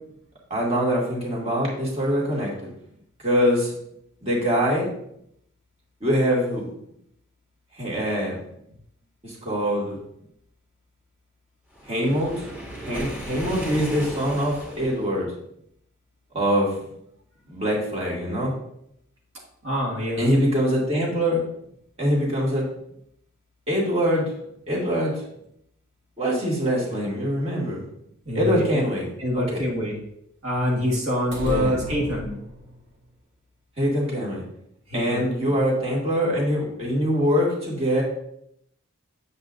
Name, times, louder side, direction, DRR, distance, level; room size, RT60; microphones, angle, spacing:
voice 1, 0.5-2.5 3.2-3.7 4.2-4.9 6.0-6.6 7.8-8.4 9.2-10.0 11.9-12.5 12.9-15.3 16.3-16.8 17.5-18.5 20.2-21.5 22.0-22.7 23.7-24.4 24.7-25.2 26.2-27.8 28.3-29.6 31.4-31.8 33.8-34.4 34.9-38.0, equal, 30° right, -4 dB, 2.3 m, -23 dB
Waves surf, 11.7-15.1, equal, 10° right, 2.0 m, -35 dB
voice 2, 19.6-20.2 28.3-28.8 29.2-30.0 30.4-32.4 34.9-35.5, equal, 75° right, -2 dB, 1.8 m, -26 dB
sound 1, 31.3-32.9, equal, 55° right, 2.2 m, -32 dB
8.1 x 7.9 x 2.6 m, 0.75 s
head